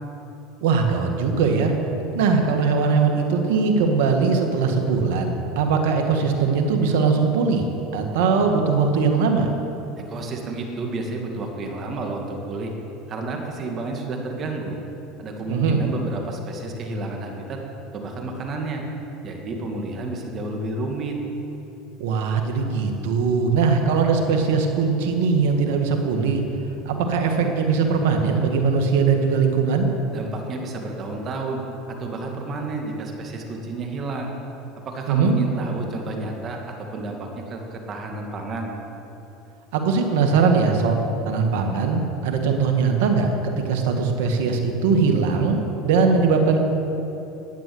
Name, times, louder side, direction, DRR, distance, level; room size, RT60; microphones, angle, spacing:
voice 1, 0.6-1.7 2.1-7.7 7.9-9.5 15.5-15.8 22.0-26.4 26.9-29.9 35.1-35.3 39.7-46.6, right 5 dB, 75° right, 4 dB, 1.8 m, -20 dB
voice 2, 10.1-12.7 13.1-14.8 15.2-17.6 17.9-18.8 19.2-21.2 30.1-31.6 31.9-34.3 34.8-38.7, right 2 dB, 40° right, 2 dB, 2.2 m, -31 dB
11.5 x 9.2 x 7.9 m, 3.0 s
supercardioid pair, 100°, 0 cm